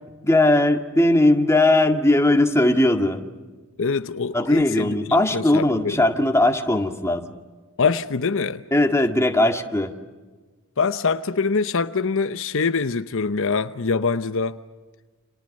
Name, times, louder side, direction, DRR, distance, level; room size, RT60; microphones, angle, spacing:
voice 1, 0.2-3.2 4.3-7.3 8.7-9.9, left 1 dB, 15° left, 5 dB, 1.9 m, -19 dB
voice 2, 3.8-6.0 7.8-8.6 10.8-14.6, left 4 dB, 65° left, 11 dB, 0.9 m, -24 dB
29.5 x 28.0 x 6.6 m, 1.3 s
head